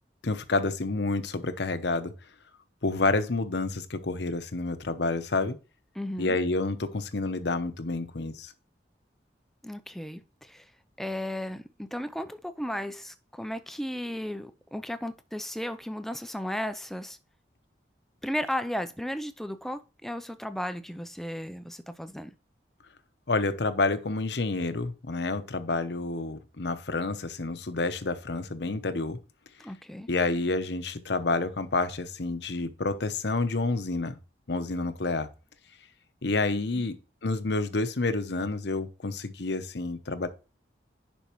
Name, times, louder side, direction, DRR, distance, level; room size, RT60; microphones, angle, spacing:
voice 1, 0.2-2.1 2.8-5.6 6.2-8.5 23.3-29.2 30.1-34.2 34.5-35.3 36.2-40.3, left 3 dB, 75° left, 0.9 m, -29 dB
voice 2, 5.9-6.4 9.6-10.7 11.0-17.2 18.2-22.3 29.6-30.1, left 1 dB, ahead, 0.5 m, -35 dB
10.0 x 5.3 x 3.0 m
head